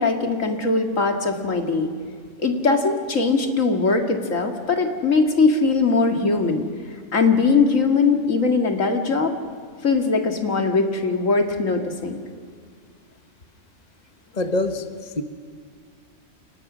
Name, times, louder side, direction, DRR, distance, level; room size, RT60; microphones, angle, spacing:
voice 1, 0.0-1.9 2.4-6.6 7.1-9.3 9.8-12.2, left 4 dB, 90° left, 3 dB, 2.6 m, -20 dB
voice 2, 14.3-15.2, left 2 dB, 35° left, 7 dB, 1.3 m, -25 dB
29.0 x 28.5 x 6.3 m, 2.1 s
omnidirectional pair, 1.3 m